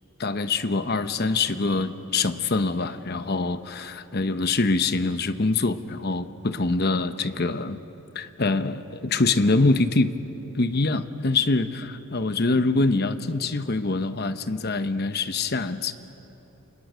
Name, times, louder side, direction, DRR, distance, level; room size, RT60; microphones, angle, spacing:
voice 1, 0.2-7.8 8.1-10.1 10.5-15.9, left 3 dB, 45° left, 10 dB, 0.9 m, -24 dB
29.0 x 27.0 x 6.3 m, 3.0 s
head